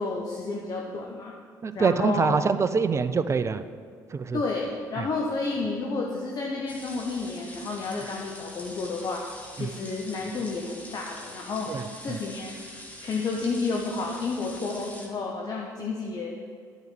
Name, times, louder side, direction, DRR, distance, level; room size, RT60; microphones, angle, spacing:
voice 1, 0.0-1.3 1.7-2.4 4.3-9.3 9.5-11.7 12.0-12.6 13.0-16.3, left 3 dB, 40° left, -1 dB, 1.1 m, -31 dB
voice 2, 1.6-3.6 4.1-4.4 5.0-5.1 9.6-9.7 11.7-11.8 12.1-12.2, right 5 dB, 30° right, 13 dB, 0.5 m, -25 dB
sound 1, 6.7-15.1, left 1 dB, 15° left, 1.7 m, -44 dB
10.5 x 5.2 x 6.1 m, 2.1 s
figure-of-eight pair, 55°, 10 cm